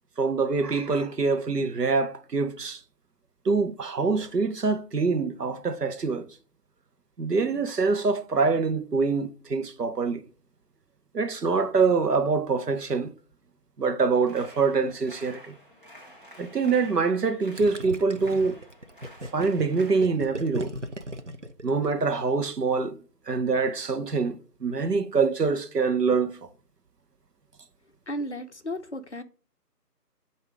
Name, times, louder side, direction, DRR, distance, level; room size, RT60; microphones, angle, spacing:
voice 1, 0.2-2.8 3.4-6.3 7.2-10.2 11.1-13.1 13.8-15.6 16.4-18.6 19.3-20.7 21.6-23.0 23.3-26.4, right 4 dB, 75° right, 0.9 m, -25 dB
sound 1, 14.1-20.1, equal, 35° right, 1.0 m, -50 dB
Gurgling, 17.6-22.3, right 1 dB, 50° right, 0.5 m, -37 dB
voice 2, 28.1-29.2, equal, 45° left, 0.6 m, -34 dB
8.0 x 2.7 x 5.0 m
figure-of-eight pair, 165°, 48 cm